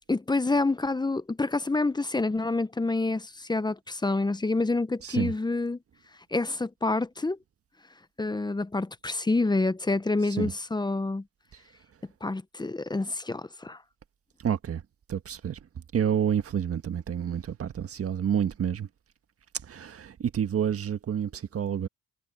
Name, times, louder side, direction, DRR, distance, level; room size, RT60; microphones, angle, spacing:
voice 1, 0.1-5.8 6.3-7.4 8.2-11.2 12.2-13.8, left 3 dB, 15° left, 0.8 m, -27 dB
voice 2, 5.0-5.3 10.4-10.5 14.4-14.8 15.1-15.6 15.9-18.9 19.7-21.9, right 8 dB, 50° right, 1.6 m, -29 dB
cardioid pair, 90°, 30 cm